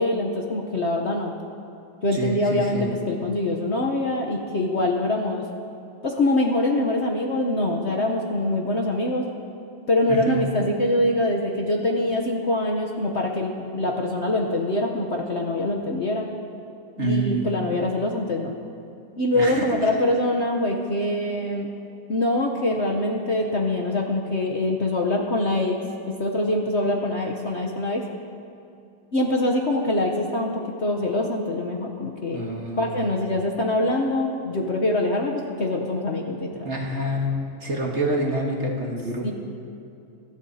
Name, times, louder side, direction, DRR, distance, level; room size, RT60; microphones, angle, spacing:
voice 1, 0.0-1.3 2.0-5.4 6.0-9.3 9.9-16.3 17.0-18.5 19.2-21.7 22.1-25.8 26.0-28.0 29.1-32.4 32.8-36.7 39.2-39.3, left 1 dB, 45° left, 1 dB, 1.0 m, -24 dB
voice 2, 2.1-2.9 10.1-10.4 17.0-17.5 19.3-19.6 32.3-33.1 36.6-37.3 37.6-39.3, right 2 dB, 40° right, -1 dB, 1.6 m, -27 dB
24.0 x 13.0 x 2.8 m, 2.7 s
omnidirectional pair, 1.9 m